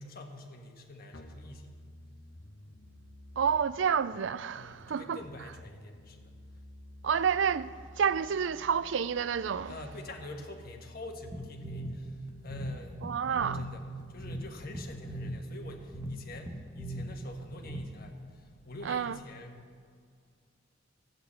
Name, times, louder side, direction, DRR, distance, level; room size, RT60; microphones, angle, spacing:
voice 1, 0.0-1.8 2.6-2.8 4.6-6.3 9.7-13.1 13.5-19.8, left 2 dB, 50° left, 1.5 m, -46 dB
sound 1, 1.1-19.1, left 1 dB, 65° left, 1.3 m, -53 dB
voice 2, 3.4-5.2 7.0-9.7 13.0-13.7 18.8-19.2, right 7 dB, 70° right, 0.4 m, -29 dB
sound 2, 11.3-18.2, right 1 dB, 15° right, 1.1 m, -41 dB
13.0 x 8.0 x 8.6 m
head